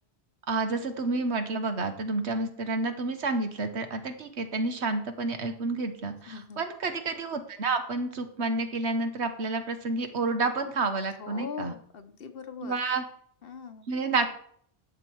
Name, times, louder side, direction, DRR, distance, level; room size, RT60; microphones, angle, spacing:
voice 1, 0.5-11.7 12.6-13.0 13.9-14.4, right 3 dB, 80° right, 8 dB, 1.5 m, -30 dB
voice 2, 6.3-6.7 11.2-12.7 13.4-13.9, left 6 dB, 60° left, 9 dB, 1.1 m, -41 dB
11.5 x 7.4 x 4.6 m, 0.62 s
omnidirectional pair, 1.1 m